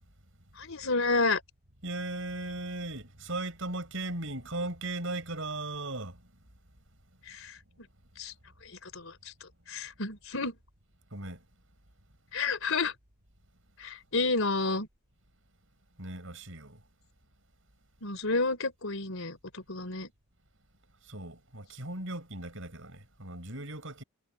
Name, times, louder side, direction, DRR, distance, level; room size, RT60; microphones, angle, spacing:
voice 1, 0.6-1.4 7.3-7.6 8.2-8.3 8.6-10.6 12.3-12.9 13.8-14.9 18.0-20.1, left 3 dB, 70° left, 3.9 m, -31 dB
voice 2, 1.8-6.3 11.1-11.4 16.0-16.8 21.0-24.0, right 2 dB, 65° right, 7.5 m, -37 dB
head